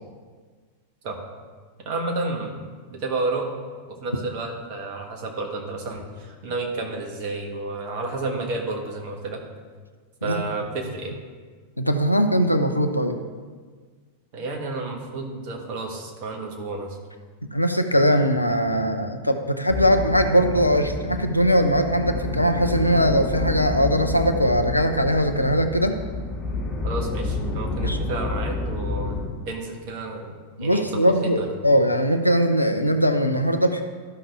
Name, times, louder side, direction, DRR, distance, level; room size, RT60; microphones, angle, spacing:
voice 1, 1.8-2.6 2.9-3.5 4.0-9.4 10.2-11.2 14.3-17.0 26.8-30.3 30.6-31.5, right 3 dB, 45° right, 1 dB, 1.6 m, -31 dB
voice 2, 11.8-13.2 17.5-26.0 27.8-28.0 30.6-33.8, equal, 85° left, 7 dB, 0.6 m, -20 dB
sound 1, 19.7-29.3, left 3 dB, 30° left, 1.9 m, -29 dB
13.0 x 5.6 x 3.6 m, 1.5 s
figure-of-eight pair, 90°, 0 cm